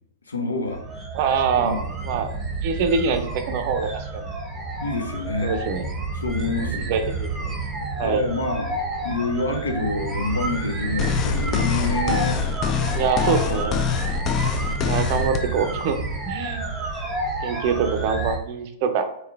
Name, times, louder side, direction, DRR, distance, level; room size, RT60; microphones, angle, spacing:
voice 1, 0.3-0.8 1.6-1.8 4.8-5.5 6.2-6.9 8.0-8.8 9.0-12.4, left 2 dB, 75° left, 3 dB, 0.7 m, -27 dB
sound 1, 0.7-18.4, right 2 dB, 20° right, 0.8 m, -30 dB
voice 2, 1.1-1.8 2.0-2.3 2.6-4.3 5.4-5.9 6.9-7.5 8.0-8.2 12.9-13.7 14.8-16.0 16.2-16.7 17.4-19.1, right 6 dB, 45° right, 7 dB, 0.5 m, -24 dB
sound 2, 11.0-15.4, left 6 dB, 30° left, 0.4 m, -24 dB
3.7 x 2.8 x 3.3 m, 0.79 s
figure-of-eight pair, 100°, 0 cm